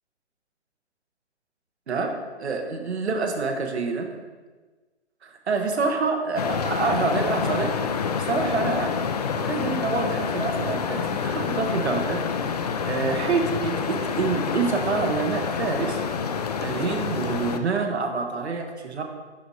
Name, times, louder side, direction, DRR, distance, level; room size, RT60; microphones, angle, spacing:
voice 1, 2.4-4.1 5.2-9.0 9.4-12.2 12.9-16.0 16.6-19.0, right 4 dB, 70° right, 3 dB, 1.3 m, -27 dB
sound 1, 6.4-17.6, left 6 dB, 35° left, 0.4 m, -27 dB
11.0 x 4.8 x 2.9 m, 1.3 s
figure-of-eight pair, 135°, 35 cm